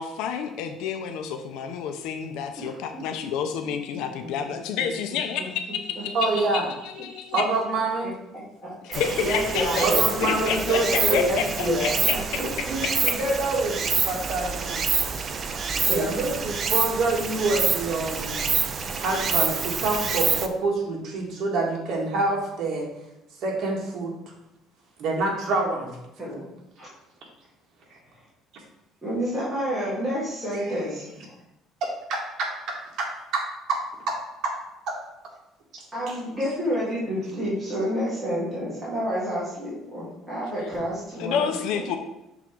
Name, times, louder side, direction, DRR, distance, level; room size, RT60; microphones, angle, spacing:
voice 1, 0.0-6.2 6.5-6.6 6.9-7.4 8.9-9.9 10.2-13.1 41.2-42.0, left 7 dB, 80° left, 7 dB, 0.6 m, -29 dB
voice 2, 2.6-3.0 6.0-6.1 8.9-10.0 10.4-12.2 15.9-16.1 26.2-26.5 26.8-26.9 29.0-31.0 35.9-41.5 41.8-41.9, equal, 5° right, -10 dB, 1.9 m, -28 dB
voice 3, 6.1-6.6 7.1-8.1 9.8-11.2 12.4-14.9 15.9-18.5 19.0-22.9 23.4-24.1 25.0-26.0 30.5-30.7 31.8-34.6 34.9-35.0 35.7-36.2, right 3 dB, 55° right, -1 dB, 1.7 m, -27 dB
Stream, 8.9-20.5, right 5 dB, 30° right, 0.4 m, -27 dB
6.0 x 3.9 x 4.4 m, 0.88 s
cardioid pair, 155°, 0 cm